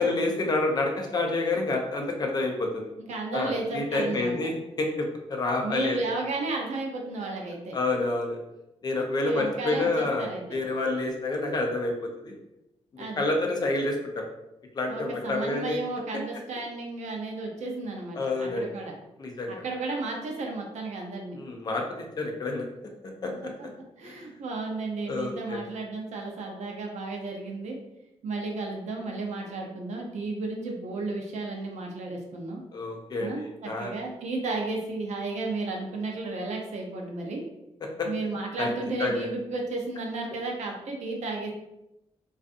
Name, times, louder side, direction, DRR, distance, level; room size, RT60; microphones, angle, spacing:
voice 1, 0.0-2.9 3.3-6.0 7.7-8.4 8.8-11.9 12.2-12.4 13.2-14.2 14.7-15.8 18.1-18.7 19.2-19.5 21.4-21.8 22.2-22.7 23.2-23.5 24.0-24.1 25.1-25.6 32.7-33.9 37.8-38.1 38.6-38.7 39.0-39.3, left 2 dB, 35° left, 1 dB, 0.4 m, -28 dB
voice 2, 3.0-4.3 5.6-7.8 9.2-10.6 13.0-13.3 14.9-18.9 19.5-21.4 23.3-23.7 24.0-27.8 28.2-32.6 33.2-37.4 38.0-41.5, right 3 dB, 90° right, 0 dB, 0.5 m, -33 dB
2.4 x 2.4 x 2.5 m, 0.90 s
wide cardioid pair, 170°, 12 cm